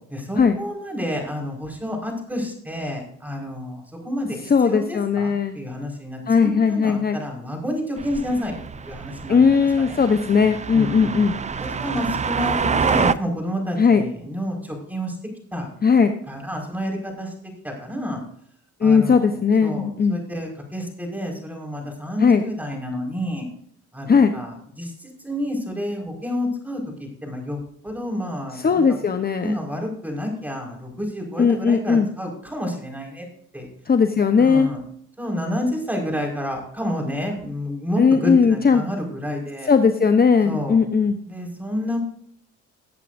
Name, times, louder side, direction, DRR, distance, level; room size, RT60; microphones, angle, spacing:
voice 1, 0.1-9.5 9.8-10.0 10.7-11.2 11.6-15.2 15.5-15.7 16.3-18.2 18.8-19.3 19.6-23.5 23.9-29.0 29.4-33.3 33.5-33.7 34.4-34.8 35.2-39.7 40.4-40.8 41.3-42.0, equal, 5° right, 0 dB, 4.8 m, -29 dB
voice 2, 4.5-5.6 6.3-7.2 9.3-11.3 13.8-14.0 15.8-16.1 18.8-20.2 22.2-22.4 24.1-24.4 28.6-29.5 31.4-32.1 33.9-34.7 38.0-38.8 39.7-41.2, left 5 dB, 30° left, 8 dB, 0.9 m, -18 dB
sound 1, 8.0-13.1, right 5 dB, 25° right, 0.5 m, -26 dB
19.0 x 8.2 x 2.6 m, 0.65 s
cardioid pair, 90°, 30 cm